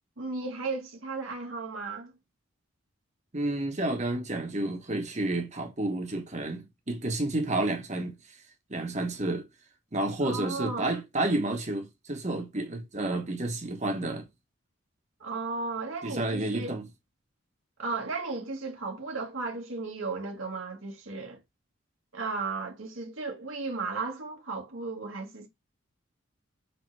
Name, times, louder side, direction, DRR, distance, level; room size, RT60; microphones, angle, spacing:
voice 1, 0.2-2.1 10.2-10.9 15.2-16.8 17.8-21.4 22.1-25.5, right 3 dB, 75° right, 2.1 m, -35 dB
voice 2, 3.3-8.1 8.7-9.5 9.9-14.2 16.0-16.9, right 2 dB, 35° right, 1.4 m, -30 dB
7.9 x 3.7 x 3.4 m
head